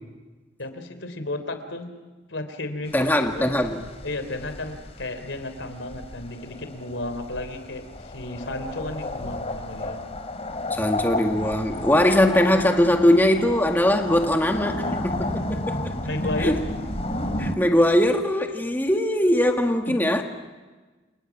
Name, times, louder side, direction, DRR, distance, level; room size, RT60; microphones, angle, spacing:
voice 1, 0.6-1.9 2.3-3.5 4.0-10.0 16.1-16.6 19.9-20.1, left 2 dB, 80° left, 9 dB, 3.4 m, -33 dB
sound 1, 2.9-17.6, left 1 dB, 35° left, 2.6 m, -32 dB
voice 2, 2.9-3.8 10.7-15.8 16.4-16.6 17.4-20.2, left 1 dB, 10° left, 4 dB, 1.8 m, -21 dB
29.5 x 28.5 x 6.0 m, 1.3 s
head